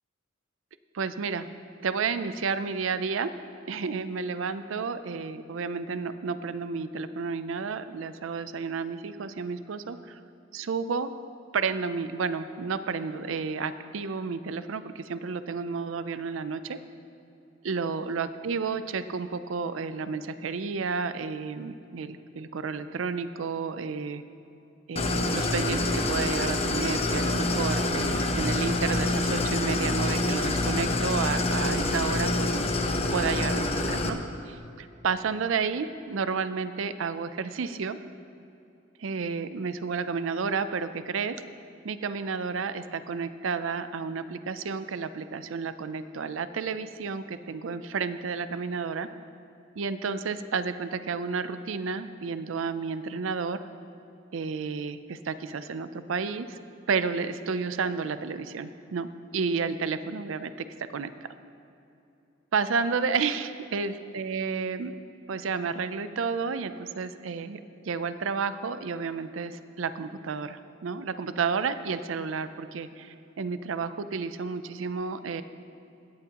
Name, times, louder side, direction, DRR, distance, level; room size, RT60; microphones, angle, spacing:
voice 1, 0.9-1.5 1.8-3.3 3.7-10.2 10.5-11.1 11.5-16.8 17.6-24.2 24.9-32.6 33.1-34.2 34.5-38.0 39.0-41.3 41.8-49.1 49.8-53.6 54.3-56.6 56.9-60.5 60.9-61.1 62.5-64.9 65.3-75.4, right 5 dB, 80° right, 12 dB, 0.5 m, -31 dB
Idling, 25.0-34.1, left 2 dB, 30° left, 0.8 m, -26 dB
16.5 x 11.5 x 2.9 m, 2.8 s
head